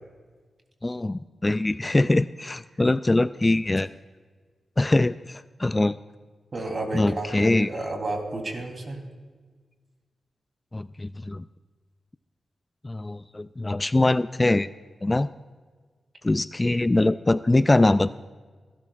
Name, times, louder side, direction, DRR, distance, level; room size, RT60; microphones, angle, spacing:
voice 1, 0.8-3.9 4.8-6.0 6.9-7.7 10.7-11.4 12.8-14.7 15.0-15.3 16.2-18.1, left 2 dB, 25° left, 15 dB, 0.3 m, -23 dB
voice 2, 6.5-9.0, right 2 dB, 50° right, 3 dB, 3.2 m, -31 dB
27.0 x 12.5 x 2.5 m, 1.5 s
cardioid pair, 55°, 0 cm